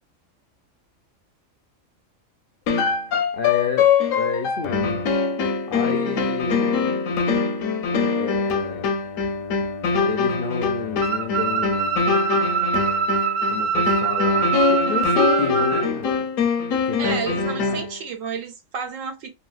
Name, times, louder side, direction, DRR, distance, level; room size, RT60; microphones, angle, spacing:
sound 1, 2.7-18.0, left 4 dB, 80° left, 1.0 m, -23 dB
voice 1, 3.3-3.9 4.1-5.0 5.7-6.8 8.2-8.9 10.1-11.9 13.5-16.3 16.8-17.2 17.5-17.9, left 6 dB, 65° left, 0.5 m, -30 dB
sound 2, 11.0-15.8, right 6 dB, 60° right, 0.8 m, -24 dB
voice 2, 17.0-19.3, right 6 dB, 75° right, 1.1 m, -31 dB
3.1 x 2.8 x 2.3 m
omnidirectional pair, 1.4 m